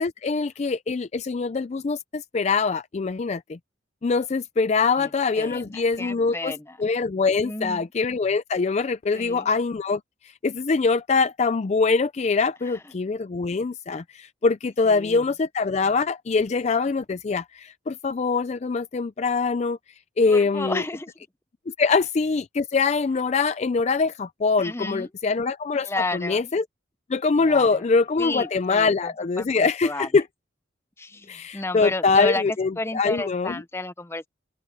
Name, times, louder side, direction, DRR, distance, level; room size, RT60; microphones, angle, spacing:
voice 1, 0.0-3.6 4.0-6.5 6.8-19.8 20.2-20.8 21.7-26.6 27.1-30.2 31.3-33.5, left 4 dB, 35° left, 0.4 m, -23 dB
voice 2, 5.4-6.8 7.4-7.9 9.1-9.5 14.8-15.2 20.3-21.1 24.6-25.1 25.8-26.5 27.3-27.8 28.2-29.1 29.4-30.1 31.0-32.4 32.8-34.3, left 2 dB, 15° left, 0.7 m, -32 dB
open air
head